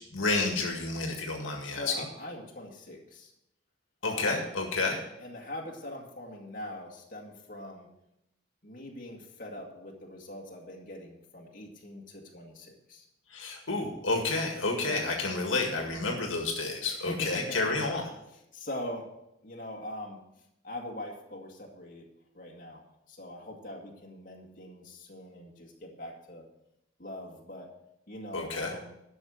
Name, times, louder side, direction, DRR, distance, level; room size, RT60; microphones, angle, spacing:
voice 1, 0.1-1.9 4.0-5.0 13.3-18.1 28.3-28.7, left 3 dB, 70° left, 1 dB, 1.9 m, -30 dB
voice 2, 1.6-3.3 4.0-4.5 5.2-7.9 8.6-13.1 14.8-15.1 16.8-17.6 18.5-19.1 19.4-20.2 20.6-22.1 22.3-26.4 27.0-27.7 28.1-28.9, left 1 dB, 40° left, -1 dB, 2.0 m, -42 dB
12.0 x 6.4 x 6.5 m, 0.86 s
head